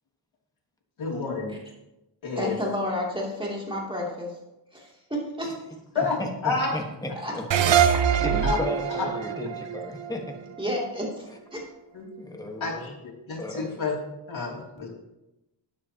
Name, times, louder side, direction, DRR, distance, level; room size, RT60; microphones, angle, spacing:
voice 1, 1.0-1.6 2.2-2.6 5.9-6.7 8.4-8.6 8.9-9.1 11.9-12.1 12.6-14.0 14.3-14.9, left 4 dB, 85° left, -3 dB, 2.9 m, -29 dB
voice 2, 2.4-4.4 4.7-5.5 7.2-7.3 7.9-8.0 10.6-11.6, left 1 dB, 10° right, -3 dB, 2.7 m, -31 dB
voice 3, 6.2-7.8 8.2-10.4 11.3-11.4 12.2-12.9 13.4-13.6, left 1 dB, 10° left, 2 dB, 1.4 m, -34 dB
sound 1, 7.5-10.8, right 8 dB, 70° right, 0.7 m, -24 dB
12.5 x 9.5 x 2.9 m, 0.94 s
wide cardioid pair, 115°, 46 cm